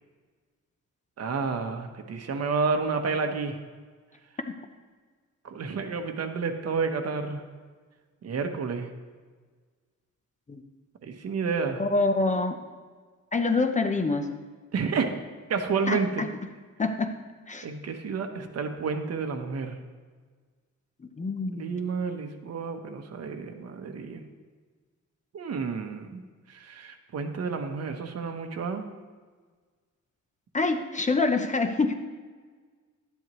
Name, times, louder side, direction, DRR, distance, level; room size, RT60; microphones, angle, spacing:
voice 1, 1.2-3.6 5.4-7.5 8.2-8.9 11.0-11.8 14.7-15.1 15.5-16.2 17.6-19.8 21.5-24.2 25.3-26.2 26.5-28.8, right 5 dB, 55° right, 6 dB, 1.0 m, -30 dB
voice 2, 11.8-12.6 13.3-14.3 15.9-16.3 16.8-17.1 17.5-17.7 21.2-21.7 30.5-31.9, left 3 dB, 25° left, 6 dB, 0.7 m, -26 dB
12.0 x 10.5 x 3.1 m, 1.5 s
cardioid pair, 130°, 31 cm